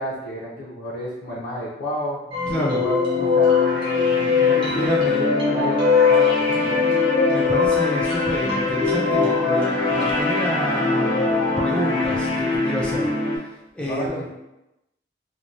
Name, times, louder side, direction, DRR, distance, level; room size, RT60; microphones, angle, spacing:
voice 1, 0.0-2.2 2.6-6.8 13.8-14.3, equal, 70° left, -7 dB, 0.5 m, -31 dB
sound 1, 2.3-13.4, left 2 dB, 35° left, 0.9 m, -23 dB
sound 2, 2.3-10.2, left 7 dB, 30° right, 0.7 m, -22 dB
voice 2, 2.5-2.8 4.7-5.2 7.3-13.1 13.7-14.3, equal, 5° left, -4 dB, 0.3 m, -29 dB
3.0 x 2.1 x 2.5 m, 0.95 s
head